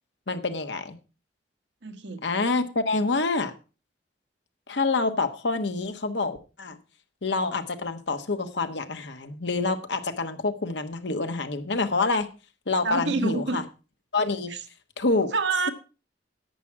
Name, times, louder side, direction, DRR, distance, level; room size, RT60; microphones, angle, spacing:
voice 1, 0.3-1.0 2.2-3.5 4.7-6.8 7.2-12.3 12.7-13.6 14.1-14.5 15.0-15.3, left 3 dB, 80° left, 1.2 m, -27 dB
voice 2, 1.8-2.2 12.8-13.6 14.5-14.6 15.3-15.7, right 4 dB, 80° right, 1.4 m, -27 dB
11.0 x 8.7 x 4.7 m
head